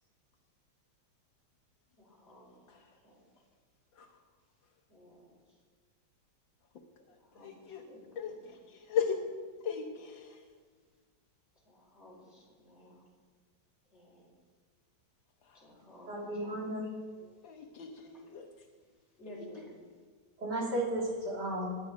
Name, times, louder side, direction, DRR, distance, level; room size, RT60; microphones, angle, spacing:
voice 1, 2.0-2.8 3.0-3.2 4.9-5.3 7.2-8.5 11.6-13.0 13.9-14.2 15.5-16.9 17.2-17.3 19.2-19.7, equal, 35° left, -5 dB, 5.7 m, -55 dB
voice 2, 7.4-7.8 8.2-8.3 8.9-9.2 9.6-10.3 17.4-18.5, left 7 dB, 75° left, 3 dB, 1.7 m, -35 dB
voice 3, 16.1-16.9 20.4-21.8, right 1 dB, 60° right, -3 dB, 3.8 m, -34 dB
21.0 x 9.4 x 5.2 m, 1.5 s
omnidirectional pair, 2.1 m